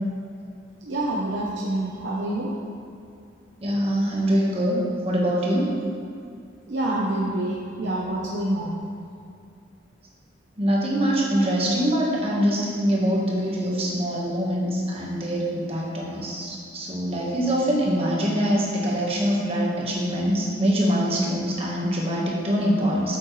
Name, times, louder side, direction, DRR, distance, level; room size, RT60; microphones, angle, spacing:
voice 1, 0.8-2.5 6.7-8.7, right 1 dB, 70° right, -4 dB, 0.9 m, -27 dB
voice 2, 3.6-5.8 10.6-23.2, equal, 30° right, -3 dB, 1.5 m, -24 dB
8.7 x 7.5 x 3.3 m, 2.4 s
head